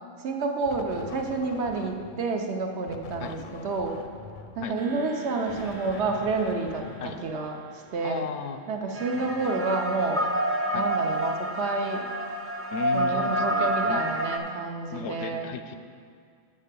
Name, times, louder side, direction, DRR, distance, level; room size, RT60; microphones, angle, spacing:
voice 1, 0.2-3.4 3.6-4.0 4.5-8.2 8.7-10.3 10.7-12.1 12.9-15.5, right 3 dB, 80° right, 3 dB, 1.1 m, -29 dB
sound 1, 0.7-2.3 2.9-8.0, left 5 dB, 60° left, 0.6 m, -44 dB
sound 2, 4.8-9.7, right 1 dB, 45° right, 0.9 m, -49 dB
voice 2, 8.0-8.6 9.1-9.7 10.7-10.9 12.7-14.0 14.9-15.8, left 6 dB, 85° left, 8 dB, 0.9 m, -36 dB
sound 3, 8.9-14.4, right 1 dB, 20° right, 0.4 m, -28 dB
6.7 x 5.5 x 6.7 m, 2.3 s
omnidirectional pair, 1.1 m